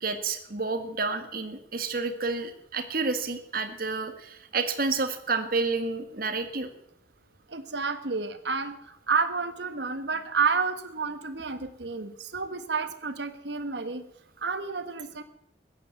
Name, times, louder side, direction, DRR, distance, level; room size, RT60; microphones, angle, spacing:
voice 1, 0.0-6.7, right 4 dB, 50° right, 8 dB, 1.7 m, -30 dB
voice 2, 7.5-14.0 14.4-15.2, right 5 dB, 70° right, 11 dB, 1.4 m, -30 dB
15.5 x 10.0 x 7.9 m, 0.77 s
head